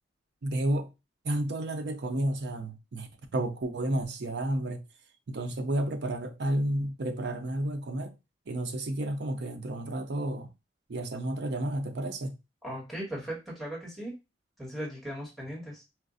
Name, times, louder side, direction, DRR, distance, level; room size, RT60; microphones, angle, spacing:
voice 1, 0.4-0.9 1.2-4.8 5.3-8.1 8.5-10.5 10.9-12.3, right 1 dB, 65° right, 0.6 m, -31 dB
voice 2, 12.6-14.1 14.6-15.8, right 1 dB, ahead, 1.4 m, -38 dB
4.4 x 2.4 x 2.5 m
head